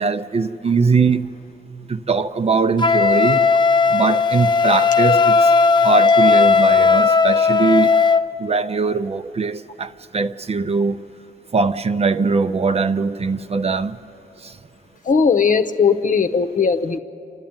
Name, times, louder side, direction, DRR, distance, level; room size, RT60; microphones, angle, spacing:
voice 1, 0.0-1.3 1.9-3.5 3.9-7.9 8.4-11.0 11.5-14.0 14.4-14.6, right 4 dB, 35° right, 0.6 m, -21 dB
Wind instrument woodwind instrument, 2.8-8.2, left 4 dB, 25° left, 0.5 m, -15 dB
voice 2, 15.0-17.0, left 5 dB, 50° left, 0.9 m, -18 dB
28.5 x 12.0 x 8.8 m
cardioid pair, 70°, 17 cm